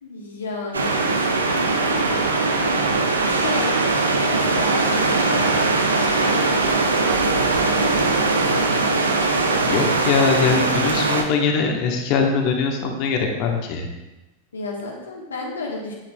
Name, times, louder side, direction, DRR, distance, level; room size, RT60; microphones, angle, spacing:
voice 1, 0.0-2.1 3.3-3.8 4.3-8.7 14.5-15.9, left 2 dB, 70° left, -2 dB, 1.3 m, -33 dB
sound 1, 0.7-11.2, right 3 dB, 75° right, 0.7 m, -20 dB
voice 2, 9.6-13.9, left 5 dB, 40° left, 3 dB, 1.2 m, -22 dB
8.4 x 8.2 x 2.3 m, 1.0 s
figure-of-eight pair, 90°, 0 cm